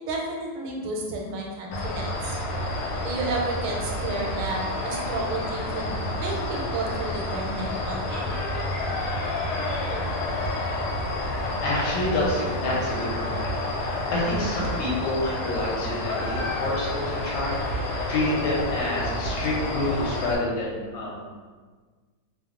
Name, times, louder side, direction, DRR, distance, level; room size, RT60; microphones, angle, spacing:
voice 1, 0.0-2.4 3.0-8.2, right 2 dB, 85° right, -1 dB, 1.4 m, -31 dB
sound 1, 1.7-20.4, left 1 dB, 90° left, 1.4 m, -29 dB
voice 2, 11.2-21.2, left 1 dB, 75° left, -5 dB, 1.3 m, -28 dB
3.3 x 2.0 x 2.4 m, 1.4 s
omnidirectional pair, 2.3 m